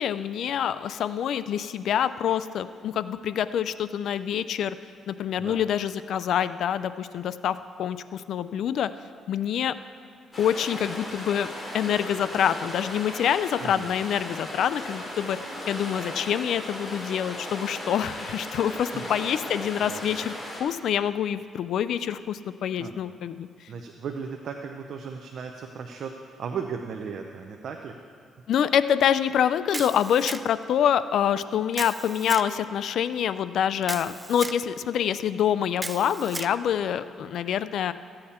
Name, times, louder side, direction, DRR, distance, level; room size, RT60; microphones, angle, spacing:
voice 1, 0.0-4.8 5.1-8.9 9.3-9.8 10.4-15.4 15.7-23.5 28.5-37.9, left 9 dB, 70° left, 14 dB, 0.4 m, -26 dB
sound 1, 10.3-20.6, left 1 dB, 25° left, 2.8 m, -37 dB
voice 2, 13.6-13.9 18.9-19.1 19.8-20.0 22.8-22.9 23.7-26.1 26.4-28.0, right 6 dB, 60° right, 4 dB, 0.7 m, -36 dB
Camera, 29.7-30.7 31.7-32.5 33.8-34.6 35.8-36.5, right 2 dB, 20° right, 0.4 m, -35 dB
14.5 x 8.7 x 4.3 m, 2.1 s
cardioid pair, 90°, 0 cm